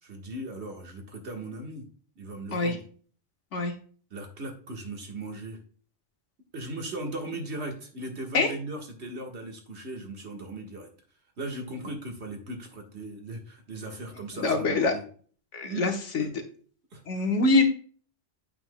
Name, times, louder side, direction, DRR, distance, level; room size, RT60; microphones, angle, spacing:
voice 1, 0.0-1.9 2.2-2.8 4.1-5.6 6.5-10.9 11.4-15.0 15.6-15.9 16.2-16.3 16.9-17.3, right 2 dB, 65° right, 2 dB, 1.8 m, -38 dB
voice 2, 14.3-14.9 15.5-16.3 17.1-17.6, left 3 dB, 80° left, 4 dB, 1.5 m, -24 dB
8.8 x 6.0 x 2.2 m, 0.43 s
omnidirectional pair, 1.2 m